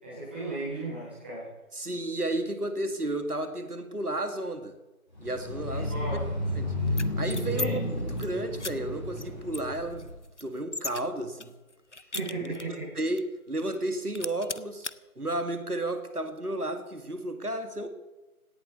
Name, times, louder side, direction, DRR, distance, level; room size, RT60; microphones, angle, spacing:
voice 1, 0.0-1.5 5.7-6.2 7.5-7.7 12.1-12.9, right 2 dB, 5° right, -9 dB, 3.2 m, -35 dB
voice 2, 1.7-4.8 5.2-5.9 6.6-7.8 8.2-10.1 10.4-11.5 12.4-14.9 15.2-17.9, right 1 dB, 85° right, 8 dB, 2.3 m, -32 dB
sound 1, 5.2-10.1, left 1 dB, 30° left, 5.1 m, -32 dB
sound 2, 6.9-7.7 8.0-8.3 8.6-8.7 9.2-9.3 9.5-11.0 11.4-12.8 13.2-13.3 13.6-13.9 14.1-14.9, left 3 dB, 50° left, 0.6 m, -37 dB
17.0 x 10.5 x 6.9 m, 1.1 s
figure-of-eight pair, 170°, 44 cm